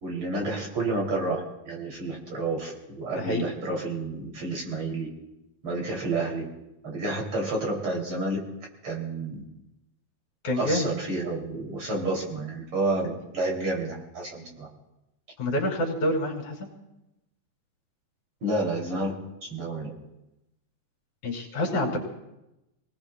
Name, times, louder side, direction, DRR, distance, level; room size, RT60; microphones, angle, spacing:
voice 1, 0.0-5.1 5.6-6.5 6.8-8.4 8.8-9.4 10.6-14.7 18.4-19.2 19.5-19.9, right 2 dB, 45° right, -2 dB, 3.7 m, -30 dB
voice 2, 10.4-10.9 15.4-16.7 21.2-22.0, left 1 dB, 70° left, 1 dB, 4.4 m, -27 dB
28.5 x 19.0 x 2.3 m, 0.92 s
omnidirectional pair, 3.6 m